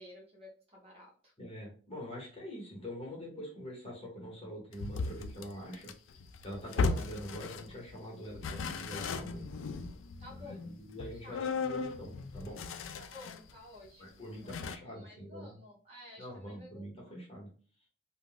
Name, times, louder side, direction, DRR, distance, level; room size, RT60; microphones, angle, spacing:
voice 1, 0.0-1.3 6.7-7.0 10.2-10.7 11.2-11.5 13.0-17.1, left 1 dB, 30° right, -2 dB, 0.8 m, -53 dB
voice 2, 1.4-5.9 6.4-9.5 10.5-12.6 14.0-15.6 16.2-17.5, equal, 30° left, -3 dB, 1.2 m, -44 dB
sound 1, 4.7-7.9 8.3-13.5 13.9-14.0 14.5-14.8, left 4 dB, 85° left, 0.3 m, -37 dB
2.5 x 2.2 x 3.5 m, 0.40 s
head